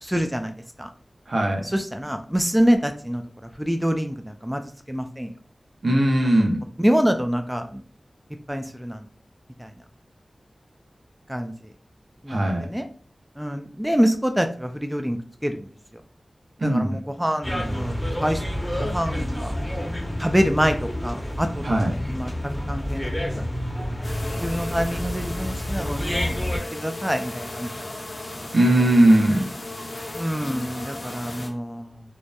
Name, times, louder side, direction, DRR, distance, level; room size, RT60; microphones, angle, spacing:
voice 1, 0.0-0.9 1.6-3.2 3.6-4.6 4.9-5.3 6.8-7.8 8.5-9.0 9.6-9.7 11.3-11.5 12.2-12.9 13.4-15.7 16.6-18.4 18.8-19.5 20.2-22.3 22.7-23.4 24.3-26.3 26.7-27.9 30.1-32.0, equal, 10° right, 6 dB, 0.3 m, -26 dB
voice 2, 1.3-1.6 5.8-6.6 12.3-12.7 16.6-17.0 21.6-21.9 28.5-29.4, right 1 dB, 70° right, 1 dB, 0.6 m, -19 dB
sound 1, 17.4-26.6, left 1 dB, 10° left, 0.7 m, -29 dB
sound 2, 24.0-31.5, left 1 dB, 55° left, 0.6 m, -36 dB
2.8 x 2.1 x 2.2 m, 0.43 s
cardioid pair, 45°, 0 cm